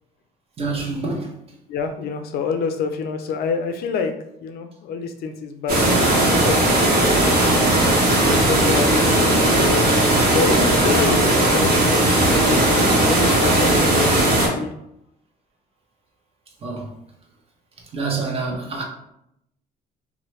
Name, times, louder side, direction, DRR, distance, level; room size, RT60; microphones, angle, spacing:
voice 1, 0.6-1.3 16.6-16.9 17.9-18.8, right 3 dB, 35° right, 0.7 m, -26 dB
voice 2, 1.7-4.1 4.4-7.0 7.9-9.8 10.3-12.7 13.0-14.7, left 5 dB, 65° left, 0.5 m, -27 dB
sound 1, 5.7-14.5, right 1 dB, 55° right, 1.1 m, -17 dB
2.9 x 2.1 x 3.1 m
cardioid pair, 110°, 17 cm